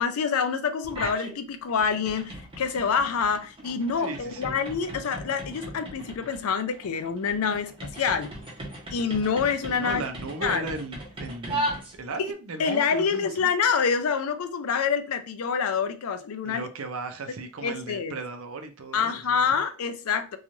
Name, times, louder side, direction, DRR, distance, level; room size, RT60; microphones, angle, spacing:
voice 1, 0.0-8.3 8.9-10.0 10.4-10.7 12.6-16.7 17.6-18.1 18.9-20.4, left 6 dB, 80° left, 0.4 m, -26 dB
sound 1, 0.8-1.4 1.7-12.3, right 1 dB, 25° right, 0.7 m, -37 dB
voice 2, 4.0-4.6 9.7-11.6 11.9-13.5 16.4-19.6, right 3 dB, 70° right, 0.5 m, -36 dB
3.0 x 2.3 x 2.6 m
head